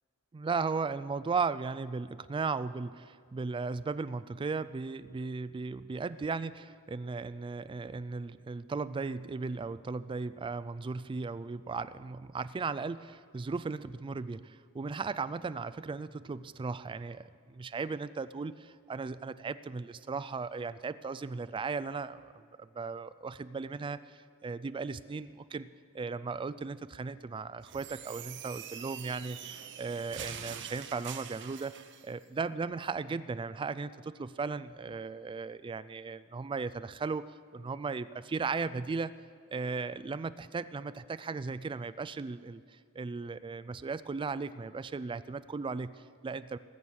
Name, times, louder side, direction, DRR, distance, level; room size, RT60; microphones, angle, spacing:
voice 1, 0.3-25.7 25.9-37.3 37.5-39.1 39.5-46.6, right 4 dB, 20° right, 15 dB, 0.3 m, -36 dB
sound 1, 27.6-32.1, right 9 dB, 55° right, 0.7 m, -44 dB
19.0 x 7.2 x 6.3 m, 2.1 s
head